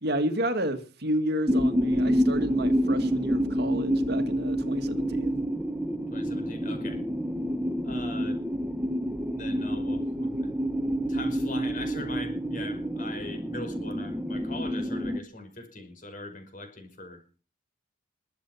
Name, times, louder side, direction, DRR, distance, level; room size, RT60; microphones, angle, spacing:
voice 1, 0.0-5.4, equal, 50° right, 2.1 m, -31 dB
sound 1, 1.5-15.2, equal, 10° right, 1.1 m, -28 dB
voice 2, 6.1-7.0 7.8-8.4 9.3-10.5 11.1-17.2, left 2 dB, 40° left, 5.5 m, -40 dB
22.5 x 8.5 x 5.8 m
head